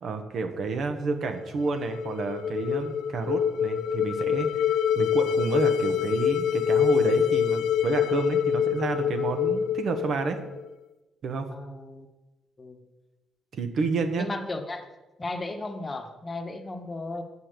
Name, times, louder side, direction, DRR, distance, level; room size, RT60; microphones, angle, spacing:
voice 1, 0.0-4.6 4.9-10.4 11.2-11.5 13.5-14.3, right 4 dB, 60° right, 6 dB, 1.2 m, -30 dB
sound 1, 1.5-10.7, left 8 dB, 80° left, 0.5 m, -26 dB
voice 2, 11.5-12.1 12.6-12.8 14.1-14.9 15.2-17.2, left 2 dB, 25° left, 5 dB, 1.2 m, -35 dB
7.5 x 5.6 x 6.8 m, 1.1 s
cardioid pair, 90°, 0 cm